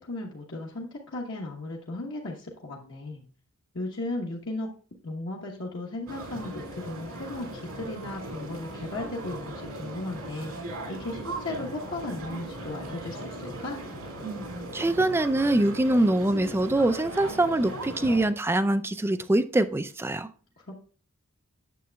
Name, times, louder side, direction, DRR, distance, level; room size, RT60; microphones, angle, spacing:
voice 1, 0.0-3.2 3.7-4.7 5.0-13.8 20.6-20.8, left 2 dB, 60° left, 1.1 m, -36 dB
sound 1, 6.1-18.3, right 1 dB, 80° right, 2.5 m, -38 dB
voice 2, 14.7-20.3, right 1 dB, 10° right, 0.3 m, -24 dB
9.2 x 7.0 x 2.2 m
head